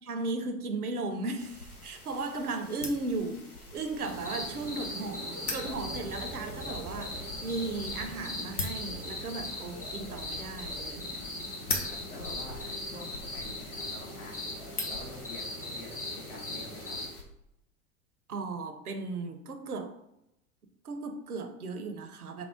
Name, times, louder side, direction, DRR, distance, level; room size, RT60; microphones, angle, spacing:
voice 1, 0.0-11.2 18.3-19.9 20.8-22.5, right 3 dB, 85° right, 6 dB, 0.6 m, -36 dB
sound 1, 1.4-17.2, left 2 dB, 90° left, 0.8 m, -43 dB
sound 2, 4.0-17.1, left 1 dB, 20° left, 1.4 m, -39 dB
voice 2, 11.9-14.6 14.9-16.0 16.3-16.9, left 2 dB, 55° left, -1 dB, 1.3 m, -47 dB
3.5 x 2.0 x 4.3 m, 0.83 s
figure-of-eight pair, 80°, 43 cm